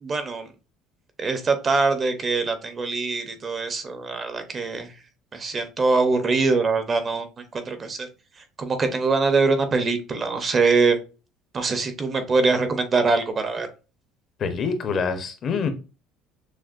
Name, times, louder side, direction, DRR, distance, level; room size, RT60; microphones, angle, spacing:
voice 1, 0.0-0.5 1.2-4.9 5.3-7.3 7.5-8.1 8.6-11.0 11.5-13.7, right 4 dB, 25° right, 0.6 m, -23 dB
voice 2, 14.4-15.7, left 5 dB, 35° left, 0.6 m, -25 dB
6.1 x 2.1 x 2.4 m
cardioid pair, 155°, 0 cm